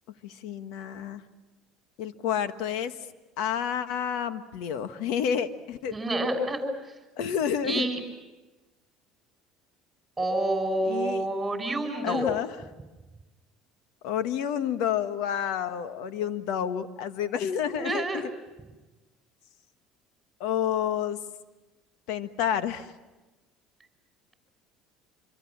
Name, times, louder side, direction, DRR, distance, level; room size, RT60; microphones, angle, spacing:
voice 1, 0.2-1.2 2.0-3.0 3.4-6.0 7.2-7.9 10.8-11.3 12.0-12.5 14.0-18.3 20.4-21.2 22.1-22.9, left 9 dB, 75° left, 10 dB, 1.5 m, -29 dB
voice 2, 5.9-6.9 7.6-8.0 10.2-12.2 17.7-18.2, right 1 dB, 15° right, 4 dB, 6.1 m, -28 dB
26.0 x 25.0 x 7.4 m, 1.2 s
supercardioid pair, 110°, 0 cm